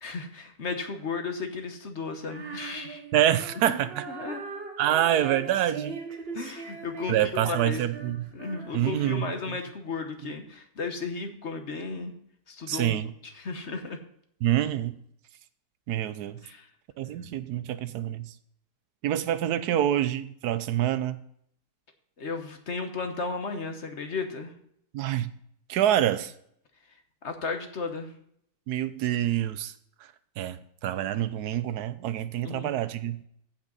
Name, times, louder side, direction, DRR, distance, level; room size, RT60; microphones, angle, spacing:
voice 1, 0.0-3.0 3.7-3.8 4.1-4.4 6.3-12.1 12.5-13.0 13.2-14.0 16.4-16.7 22.2-24.6 27.2-28.1 32.4-32.7, left 4 dB, 50° left, 6 dB, 1.3 m, -34 dB
Female singing, 2.2-9.6, right 5 dB, 40° right, 1.2 m, -40 dB
voice 2, 3.1-4.1 4.8-6.0 7.1-8.3 8.7-9.6 12.7-13.1 14.4-15.0 15.9-16.4 17.0-18.3 19.0-21.2 24.9-25.3 25.7-26.3 28.7-29.7 30.4-33.2, right 11 dB, 80° right, 14 dB, 1.2 m, -26 dB
15.5 x 6.0 x 4.0 m, 0.69 s
omnidirectional pair, 1.7 m